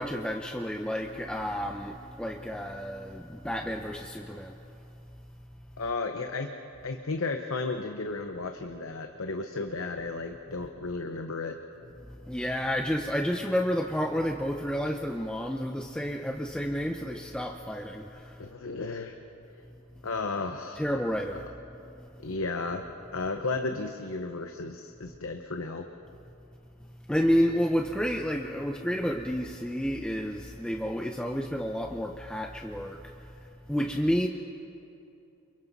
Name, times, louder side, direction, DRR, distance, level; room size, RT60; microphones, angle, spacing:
voice 1, 0.0-4.6 12.1-18.4 20.8-21.5 22.0-22.1 27.1-33.4 33.7-34.3, equal, 5° left, 3 dB, 0.5 m, -30 dB
voice 2, 5.8-6.5 6.8-11.6 18.4-19.1 20.0-20.8 22.2-22.9 23.1-25.9, left 3 dB, 65° left, 5 dB, 0.9 m, -33 dB
29.5 x 23.0 x 4.1 m, 2.8 s
head